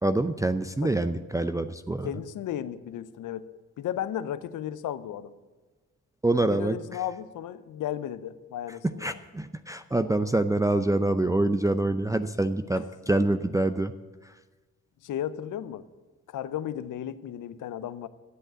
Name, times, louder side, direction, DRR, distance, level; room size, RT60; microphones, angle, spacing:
voice 1, 0.0-2.1 6.2-7.0 8.8-13.9 14.2-14.3, right 2 dB, 10° right, 8 dB, 0.5 m, -26 dB
voice 2, 2.0-3.5 3.8-5.3 6.4-9.2 15.0-15.8 16.3-18.1, left 10 dB, 65° left, 14 dB, 0.7 m, -34 dB
11.5 x 7.8 x 7.5 m, 1.3 s
supercardioid pair, 50°, 33 cm